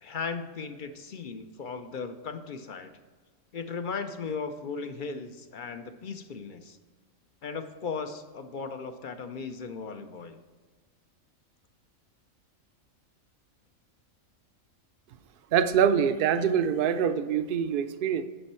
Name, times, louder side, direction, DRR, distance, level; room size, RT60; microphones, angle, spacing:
voice 1, 0.0-2.9 3.5-6.8 7.4-10.4, left 5 dB, 60° left, 8 dB, 0.5 m, -37 dB
voice 2, 15.5-18.2, right 8 dB, 60° right, 10 dB, 0.6 m, -24 dB
9.9 x 5.3 x 4.3 m, 1.4 s
omnidirectional pair, 1.4 m